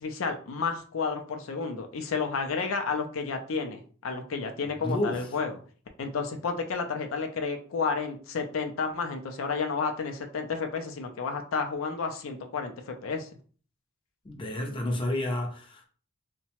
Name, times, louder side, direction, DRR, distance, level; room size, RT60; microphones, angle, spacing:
voice 1, 0.0-5.5 6.0-13.3, left 5 dB, 75° left, 5 dB, 0.4 m, -31 dB
voice 2, 4.8-5.3 14.2-15.9, left 1 dB, 25° left, 2 dB, 0.5 m, -30 dB
2.8 x 2.1 x 2.8 m, 0.41 s
head